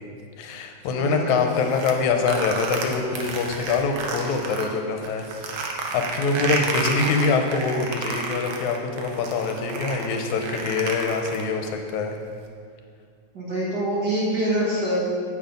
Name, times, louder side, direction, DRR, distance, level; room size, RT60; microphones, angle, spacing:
voice 1, 0.4-12.2, left 4 dB, 85° left, 4 dB, 2.2 m, -25 dB
voice 2, 0.9-1.5 13.3-15.0, right 1 dB, 40° right, -6 dB, 2.0 m, -25 dB
sound 1, 1.5-4.7 5.0-11.7, right 4 dB, 65° right, 1.3 m, -31 dB
8.4 x 7.3 x 5.1 m, 2.2 s
omnidirectional pair, 3.3 m